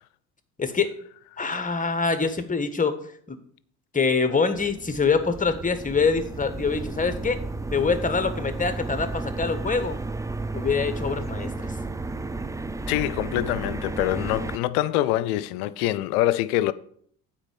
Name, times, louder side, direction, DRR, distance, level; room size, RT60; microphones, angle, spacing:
voice 1, 0.6-0.9 1.4-3.0 3.3-3.4 3.9-7.4 7.7-10.0 10.5-11.7, left 4 dB, 20° left, 1.4 m, -25 dB
sound 1, 4.5-14.6, right 3 dB, 10° right, 0.4 m, -33 dB
voice 2, 12.9-16.7, left 14 dB, 80° left, 0.6 m, -25 dB
8.8 x 4.5 x 7.3 m
hypercardioid pair, 55°, 44 cm